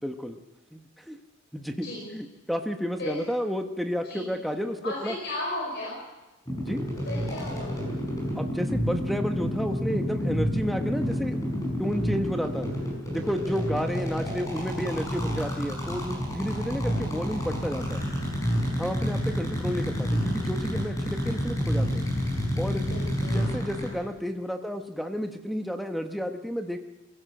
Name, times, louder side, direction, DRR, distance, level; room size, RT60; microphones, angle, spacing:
voice 1, 0.0-0.4 0.7-1.2 1.5-1.9 2.1-5.1 6.6-6.8 8.3-11.4 11.8-12.7 13.1-18.0 18.8-22.1 22.6-22.9 23.3-26.8, equal, ahead, 5 dB, 1.0 m, -31 dB
voice 2, 1.8-2.1 3.0-3.2 4.0-4.4 4.8-6.0 7.0-7.9 22.8-23.5, left 1 dB, 55° left, -2 dB, 5.1 m, -36 dB
sound 1, 6.5-23.9, equal, 15° left, 5.5 m, -29 dB
22.0 x 16.0 x 7.8 m, 1.1 s
head